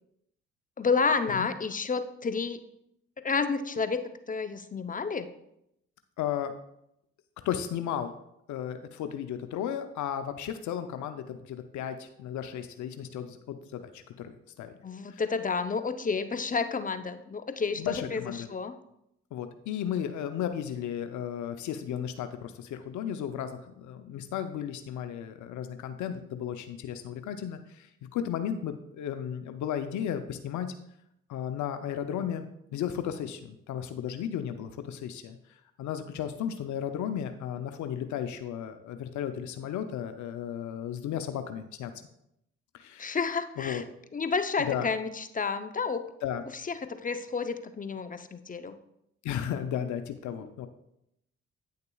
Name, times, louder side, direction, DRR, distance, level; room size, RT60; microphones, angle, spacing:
voice 1, 0.8-2.6 3.2-5.3 14.8-18.2 18.5-18.7 43.0-43.8 44.1-46.0 46.7-48.8 50.4-50.5, left 5 dB, 25° left, 10 dB, 0.6 m, -30 dB
voice 2, 6.2-6.5 7.4-8.1 8.5-14.7 15.1-15.2 17.8-18.5 19.3-30.7 31.3-32.5 32.7-35.4 35.8-41.9 42.7-43.2 43.6-43.8 44.7-44.9 46.2-46.4 49.2-50.7, left 9 dB, 65° left, 9 dB, 0.6 m, -34 dB
9.3 x 6.6 x 2.3 m, 0.79 s
hypercardioid pair, 55°, 31 cm